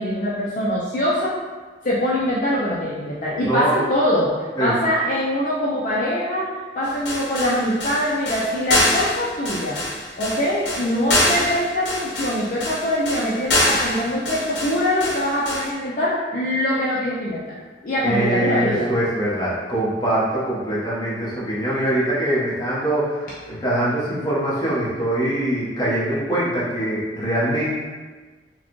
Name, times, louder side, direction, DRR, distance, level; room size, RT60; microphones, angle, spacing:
voice 1, 0.0-1.3 1.8-9.8 10.2-17.5 17.8-18.9, left 1 dB, 50° left, -8 dB, 0.6 m, -23 dB
voice 2, 3.4-3.7 4.6-4.7 18.0-27.8, right 1 dB, 25° left, -8 dB, 1.1 m, -23 dB
sound 1, 6.8-15.7, left 1 dB, 70° left, 1.0 m, -24 dB
4.6 x 2.3 x 3.1 m, 1.3 s
head